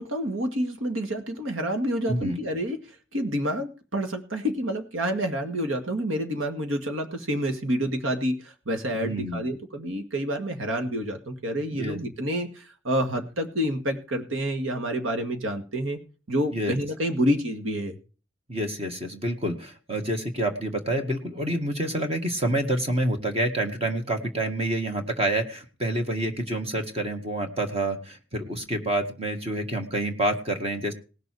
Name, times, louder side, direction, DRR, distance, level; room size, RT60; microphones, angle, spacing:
voice 1, 0.0-2.8 3.1-16.0 16.3-18.0, equal, 85° right, 6 dB, 1.9 m, -28 dB
voice 2, 2.1-2.4 8.9-9.4 11.7-12.0 16.5-16.8 18.5-30.9, right 1 dB, 30° right, 4 dB, 1.9 m, -28 dB
19.0 x 6.8 x 4.8 m, 0.35 s
head